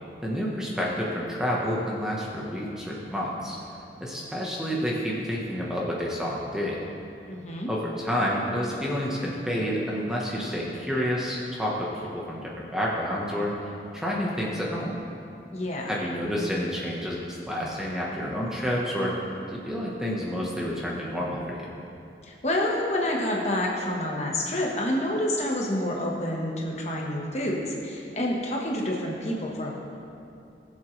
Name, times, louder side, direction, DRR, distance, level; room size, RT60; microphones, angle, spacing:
voice 1, 0.2-3.6 4.0-6.8 7.7-15.0 15.9-19.1 19.5-21.7, equal, 5° right, -4 dB, 1.2 m, -29 dB
voice 2, 7.3-7.7 15.5-16.0 22.2-29.7, left 1 dB, 35° left, -2 dB, 1.4 m, -28 dB
19.5 x 7.6 x 3.3 m, 2.6 s
head